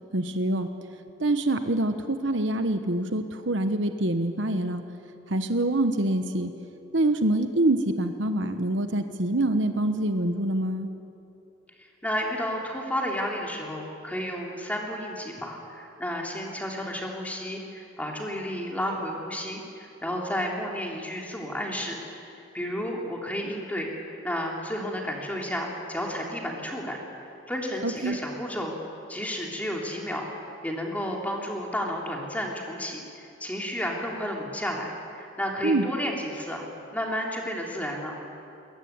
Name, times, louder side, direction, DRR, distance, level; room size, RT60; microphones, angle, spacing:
voice 1, 0.1-0.7 1.2-4.8 5.3-6.5 6.9-10.9 27.8-28.2 35.6-35.9, right 1 dB, 65° right, 8 dB, 1.2 m, -25 dB
voice 2, 11.8-22.2 22.5-27.0 27.5-28.7 29.1-30.2 30.6-36.7 36.9-38.1, equal, 10° left, -1 dB, 3.2 m, -32 dB
21.5 x 21.0 x 9.5 m, 2.7 s
head